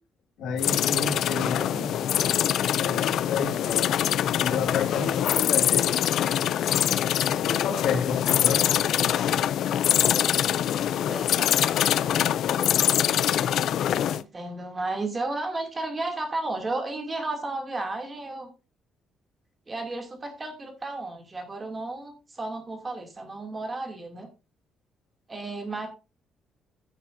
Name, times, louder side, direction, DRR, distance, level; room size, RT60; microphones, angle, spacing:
voice 1, 0.4-1.9 2.2-2.4 2.8-5.9 7.3-8.7, left 5 dB, 80° left, 6 dB, 1.9 m, -30 dB
sound 1, 0.6-14.2, left 10 dB, 60° left, 0.5 m, -24 dB
voice 2, 11.1-12.4 13.9-18.5 19.7-24.3 25.3-25.9, right 2 dB, 20° right, 3 dB, 2.5 m, -33 dB
15.0 x 7.4 x 2.6 m, 0.29 s
cardioid pair, 180°, 0 cm